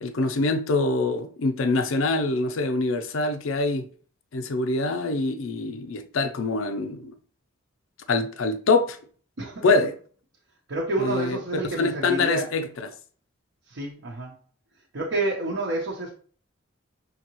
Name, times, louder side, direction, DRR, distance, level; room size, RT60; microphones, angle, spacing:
voice 1, 0.0-3.8 4.3-7.1 8.1-9.0 9.6-9.9 11.0-12.9, left 3 dB, 75° left, 0.5 m, -24 dB
voice 2, 10.7-12.5 13.7-14.3 14.9-16.1, right 2 dB, 65° right, 0.9 m, -29 dB
5.6 x 2.8 x 3.0 m
head